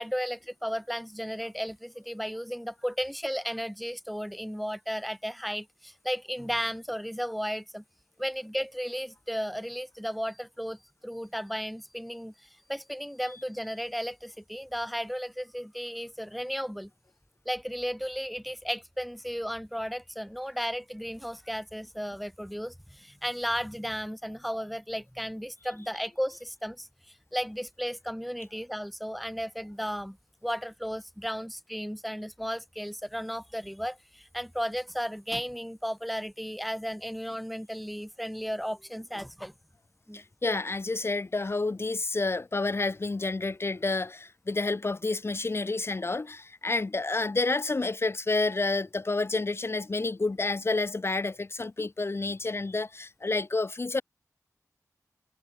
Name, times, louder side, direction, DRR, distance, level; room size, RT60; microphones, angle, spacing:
voice 1, 0.0-7.8 8.2-16.9 17.4-30.2 30.4-39.5 40.1-40.2, equal, ahead, 1.1 m, -34 dB
voice 2, 40.1-54.0, left 3 dB, 40° left, 0.8 m, -29 dB
wide cardioid pair, 60°, 6 cm